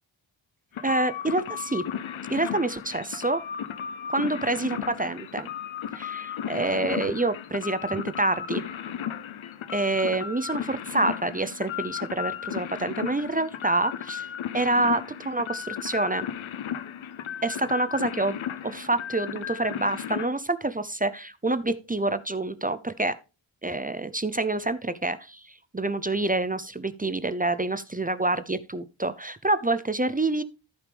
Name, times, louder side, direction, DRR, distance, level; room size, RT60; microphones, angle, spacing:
sound 1, 0.7-20.3, left 9 dB, 75° left, 0.7 m, -35 dB
voice 1, 0.8-1.8 2.3-3.4 4.1-5.5 5.9-8.6 9.7-14.3 14.5-16.3 17.4-23.2 23.6-30.4, right 2 dB, 20° right, 0.6 m, -27 dB
14.0 x 4.9 x 3.4 m
cardioid pair, 55°, 47 cm